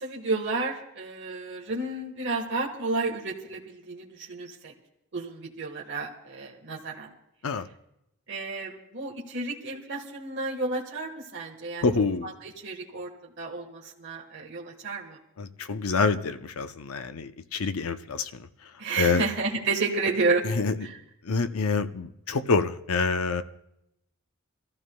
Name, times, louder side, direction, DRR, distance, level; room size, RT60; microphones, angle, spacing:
voice 1, 0.0-4.7 5.1-7.1 8.3-11.8 12.2-13.1 13.4-15.2 18.8-20.4 20.8-21.0, right 3 dB, 55° right, -2 dB, 1.4 m, -31 dB
voice 2, 11.8-12.3 15.4-18.3 19.0-19.3 20.4-20.7 21.2-23.4, left 4 dB, 85° left, 10 dB, 0.7 m, -26 dB
26.0 x 14.5 x 2.3 m, 0.83 s
head